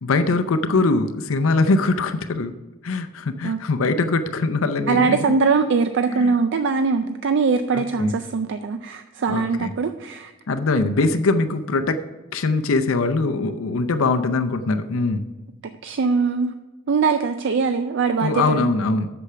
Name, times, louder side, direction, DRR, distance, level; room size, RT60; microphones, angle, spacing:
voice 1, 0.0-2.5 2.8-5.4 6.1-6.3 7.7-8.1 9.3-9.7 10.5-12.0 12.3-15.2 18.2-19.1, left 3 dB, 80° left, 8 dB, 0.6 m, -22 dB
voice 2, 4.9-10.3 15.8-16.5 16.9-18.7, right 4 dB, 60° right, 9 dB, 0.4 m, -21 dB
8.2 x 7.0 x 5.6 m, 1.1 s
head